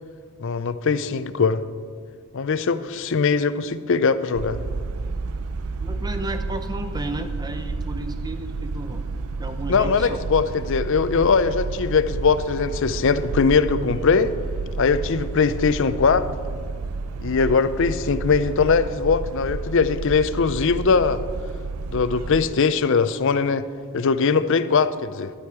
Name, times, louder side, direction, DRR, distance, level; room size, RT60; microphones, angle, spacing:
voice 1, 0.4-1.6 2.3-4.6 9.7-14.3 14.8-16.3 17.2-21.2 21.9-23.6 23.9-25.3, left 5 dB, 55° left, 13 dB, 0.5 m, -21 dB
sound 1, 4.3-22.5, right 3 dB, 75° right, 0.5 m, -31 dB
voice 2, 5.8-9.0 9.4-10.2, right 1 dB, 20° right, 7 dB, 0.7 m, -33 dB
11.5 x 11.5 x 4.7 m, 2.1 s
head